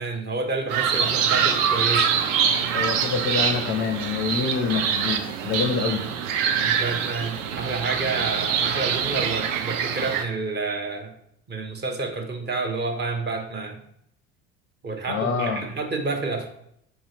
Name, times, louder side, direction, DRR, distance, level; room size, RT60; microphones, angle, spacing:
voice 1, 0.0-2.1 6.6-11.1 11.5-13.8 14.8-16.5, right 3 dB, 25° right, 3 dB, 0.6 m, -29 dB
sound 1, 0.7-10.2, right 7 dB, 65° right, 0.5 m, -24 dB
voice 2, 2.7-6.0 15.1-15.7, left 5 dB, 30° left, 5 dB, 0.4 m, -26 dB
4.8 x 2.7 x 2.8 m, 0.72 s
figure-of-eight pair, 65°, 41 cm